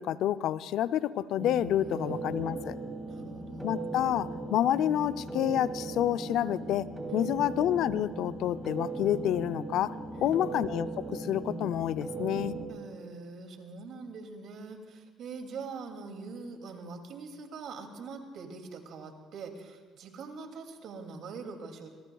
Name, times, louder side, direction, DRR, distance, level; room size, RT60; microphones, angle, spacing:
voice 1, 0.0-2.8 3.6-6.9 7.1-9.9 10.2-12.5, left 11 dB, 70° left, 14 dB, 0.5 m, -29 dB
sound 1, 1.4-12.7, right 3 dB, 15° right, 3.1 m, -38 dB
voice 2, 1.8-2.4 3.1-3.7 7.1-7.4 10.1-10.5 12.7-21.9, right 4 dB, 65° right, 4 dB, 2.5 m, -43 dB
24.0 x 22.5 x 2.4 m, 1.5 s
supercardioid pair, 65°, 0 cm